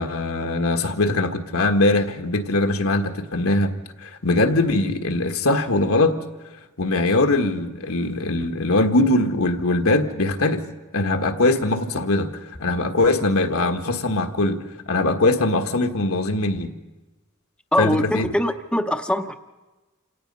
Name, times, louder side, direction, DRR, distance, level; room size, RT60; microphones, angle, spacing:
voice 1, 0.0-3.7 4.0-6.2 6.8-10.6 10.9-16.7 17.8-18.2, left 2 dB, 75° left, 5 dB, 1.5 m, -21 dB
voice 2, 17.7-19.3, left 1 dB, 5° left, 6 dB, 0.7 m, -22 dB
27.5 x 17.0 x 5.4 m, 1.2 s
head